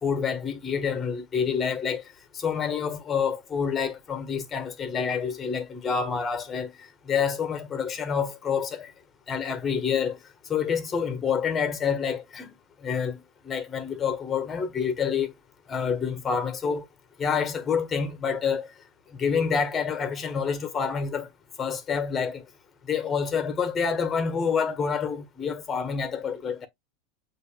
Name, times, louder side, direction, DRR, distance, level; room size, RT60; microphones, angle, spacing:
voice 1, 0.0-2.0 2.3-6.7 7.1-8.9 9.3-10.2 10.5-12.5 12.8-15.3 15.7-16.8 17.2-18.7 19.2-21.3 21.6-22.4 22.9-26.7, left 6 dB, 30° left, 1.3 m, -27 dB
8.2 x 2.8 x 2.2 m
hypercardioid pair, 85°, 0 cm